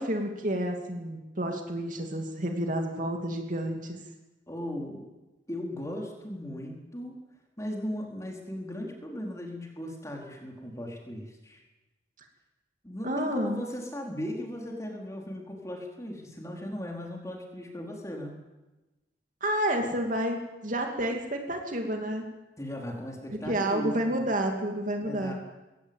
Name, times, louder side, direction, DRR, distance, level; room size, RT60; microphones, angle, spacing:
voice 1, 0.0-4.0 13.0-13.6 19.4-22.3 23.5-25.3, right 1 dB, 45° right, 3 dB, 2.7 m, -30 dB
voice 2, 4.5-5.1 5.5-7.2 7.6-11.6 12.8-18.4 22.6-24.2 25.0-25.3, equal, 15° left, 0 dB, 4.4 m, -37 dB
21.0 x 17.0 x 9.0 m, 1.1 s
head